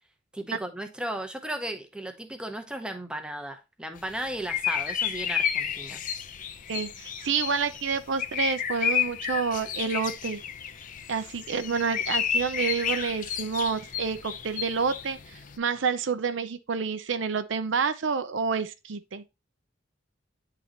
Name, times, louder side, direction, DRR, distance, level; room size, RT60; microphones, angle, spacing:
voice 1, 0.3-6.0, right 1 dB, 5° right, 0.8 m, -35 dB
sound 1, 4.0-15.6, left 8 dB, 45° left, 0.5 m, -31 dB
voice 2, 6.7-10.4 11.1-15.2 15.6-19.2, right 5 dB, 70° right, 0.6 m, -28 dB
9.4 x 3.9 x 2.9 m
head